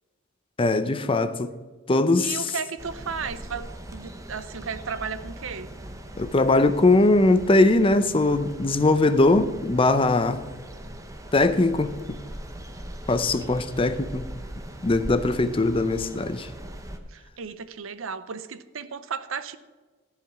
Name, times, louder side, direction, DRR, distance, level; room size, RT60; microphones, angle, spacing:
voice 1, 0.6-1.5 1.9-2.4 6.2-10.4 11.3-12.2 13.1-14.3 14.8-16.5, left 2 dB, 25° left, 0.5 m, -21 dB
voice 2, 2.2-5.7 17.1-19.6, right 6 dB, 75° right, 0.6 m, -34 dB
sound 1, 2.8-17.0, right 1 dB, 15° right, 0.8 m, -40 dB
13.5 x 4.9 x 7.2 m
head